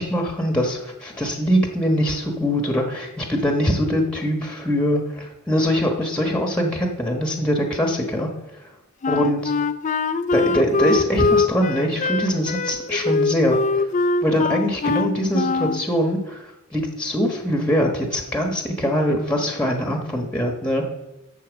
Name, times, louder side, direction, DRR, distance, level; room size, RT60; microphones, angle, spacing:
voice 1, 0.0-8.3 8.6-8.7 9.1-9.5 10.3-13.9 14.2-20.9, equal, 5° left, 2 dB, 1.2 m, -23 dB
Wind instrument woodwind instrument, 9.0-15.8, left 4 dB, 35° left, 0.4 m, -22 dB
12.0 x 4.3 x 7.2 m, 0.99 s
head